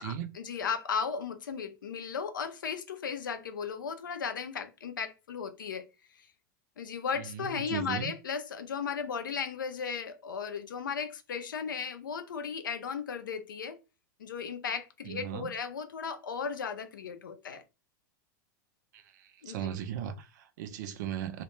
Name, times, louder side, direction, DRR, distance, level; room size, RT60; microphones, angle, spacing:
voice 1, 0.0-5.9 6.1-6.2 6.8-13.8 14.2-17.6 19.4-19.7, left 6 dB, 85° left, 0.4 m, -36 dB
voice 2, 7.2-8.1 15.0-15.5 18.9-19.0 19.5-21.4, right 10 dB, 65° right, 0.4 m, -37 dB
2.1 x 2.1 x 3.0 m
hypercardioid pair, 100°, 10 cm